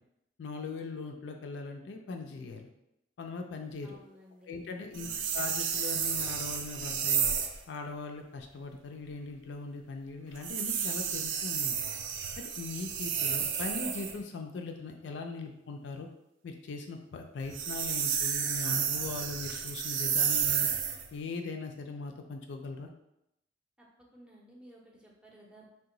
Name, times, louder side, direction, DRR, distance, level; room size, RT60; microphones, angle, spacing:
voice 1, 0.4-2.7 3.2-4.0 4.5-7.3 7.7-11.8 12.6-16.1 16.4-20.7 21.1-22.9, left 3 dB, 70° left, 4 dB, 0.4 m, -40 dB
voice 2, 3.8-4.5 4.8-5.3 23.8-25.7, right 1 dB, 5° right, -3 dB, 0.5 m, -56 dB
sound 1, 4.9-7.6 10.4-14.2 17.4-21.1, right 7 dB, 90° right, 0.4 m, -31 dB
2.8 x 2.2 x 3.7 m, 0.84 s
head